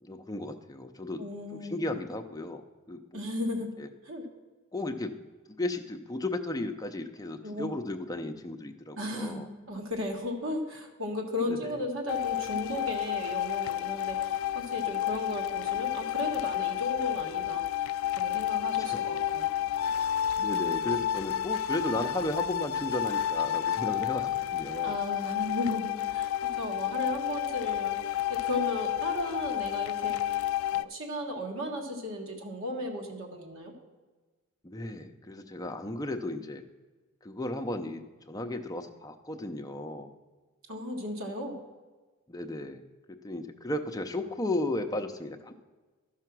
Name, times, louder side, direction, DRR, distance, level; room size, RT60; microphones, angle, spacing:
voice 1, 0.0-1.2 1.5-3.0 3.8-3.9 4.7-5.2 5.6-9.5 11.5-11.8 18.8-19.1 20.4-25.0 34.6-36.6 37.2-40.1 42.3-42.8 43.1-45.5, left 2 dB, 15° left, 5 dB, 0.6 m, -35 dB
voice 2, 1.2-1.8 3.1-3.7 4.0-4.2 7.4-7.7 9.0-17.6 18.2-19.5 24.8-26.3 26.6-28.0 28.3-30.4 30.7-33.7 40.7-41.6, left 1 dB, 65° right, 1 dB, 1.7 m, -35 dB
sound 1, 12.1-30.8, left 11 dB, 70° left, 0.3 m, -31 dB
12.5 x 5.7 x 6.0 m, 1.3 s
head